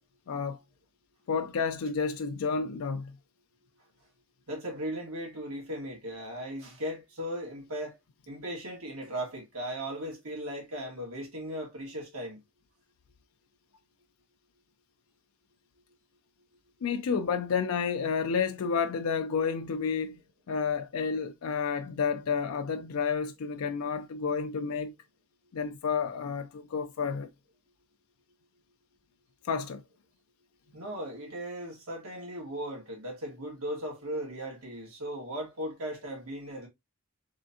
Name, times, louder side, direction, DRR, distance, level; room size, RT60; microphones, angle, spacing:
voice 1, 0.3-0.6 1.3-3.2 16.8-20.2 20.5-24.9 25.5-27.3 29.4-29.8, left 6 dB, 90° left, 0.4 m, -30 dB
voice 2, 4.5-8.0 8.3-12.4 30.7-36.7, equal, 90° right, 1.7 m, -37 dB
3.7 x 3.3 x 2.6 m
head